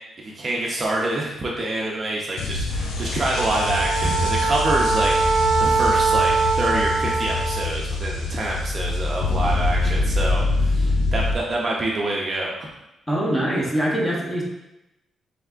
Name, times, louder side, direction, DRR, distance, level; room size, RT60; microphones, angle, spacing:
voice 1, 0.2-12.5, right 2 dB, 30° right, -3 dB, 0.5 m, -26 dB
sound 1, 2.4-11.3, left 2 dB, 75° left, 0.5 m, -25 dB
Wind instrument woodwind instrument, 3.3-7.8, right 4 dB, 90° right, 0.4 m, -22 dB
sound 2, 4.0-7.1, right 2 dB, 60° right, 0.9 m, -33 dB
voice 2, 13.1-14.4, right 1 dB, 10° left, -4 dB, 0.8 m, -23 dB
3.4 x 3.2 x 3.6 m, 0.93 s
wide cardioid pair, 165°, 0 cm